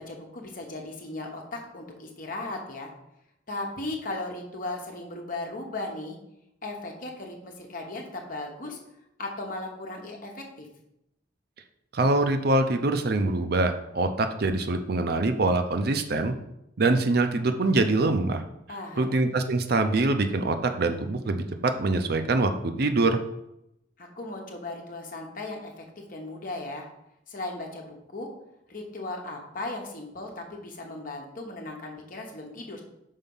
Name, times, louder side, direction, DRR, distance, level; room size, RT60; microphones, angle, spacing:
voice 1, 0.0-2.9 3.5-6.2 6.6-8.8 9.2-10.7 18.7-19.1 24.0-25.8 26.1-26.9 27.3-28.3 28.7-32.8, left 2 dB, 50° left, 1 dB, 1.2 m, -37 dB
voice 2, 11.9-16.3 16.8-18.4 19.0-23.2, right 2 dB, 55° right, 8 dB, 0.6 m, -24 dB
5.5 x 4.5 x 5.5 m, 0.83 s
head